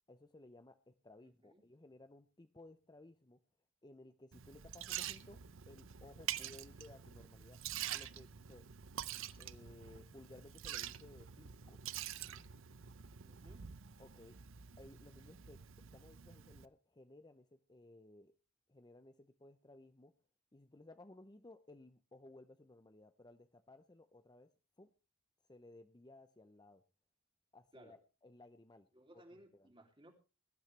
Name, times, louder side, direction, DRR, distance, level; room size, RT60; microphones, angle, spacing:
voice 1, 0.1-3.4 3.8-5.4 5.7-7.6 7.9-8.7 9.4-11.8 14.0-14.4 14.8-18.3 18.7-20.1 20.5-24.5 24.8-24.9 25.5-26.8 27.5-28.9 29.5-29.7, left 2 dB, 20° left, 10 dB, 0.6 m, -59 dB
voice 2, 1.2-1.6 13.2-13.7 27.7-28.0 28.9-30.1, right 1 dB, 25° right, 3 dB, 2.9 m, -61 dB
Liquid, 4.3-16.7, right 11 dB, 60° right, 0.7 m, -47 dB
21.0 x 12.0 x 3.3 m, 0.31 s
head